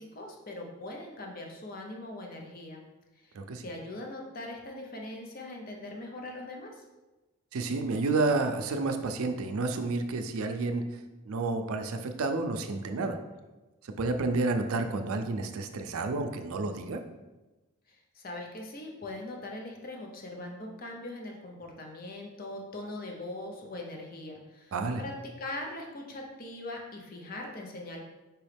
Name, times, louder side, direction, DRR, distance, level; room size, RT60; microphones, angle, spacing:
voice 1, 0.0-2.8 3.2-3.3 3.6-6.8 17.9-28.0, left 2 dB, 40° left, 1 dB, 0.6 m, -41 dB
voice 2, 7.5-10.8 11.3-13.2 14.0-17.0 24.7-25.0, right 3 dB, 75° right, 6 dB, 0.4 m, -30 dB
4.7 x 3.1 x 3.3 m, 1.1 s
head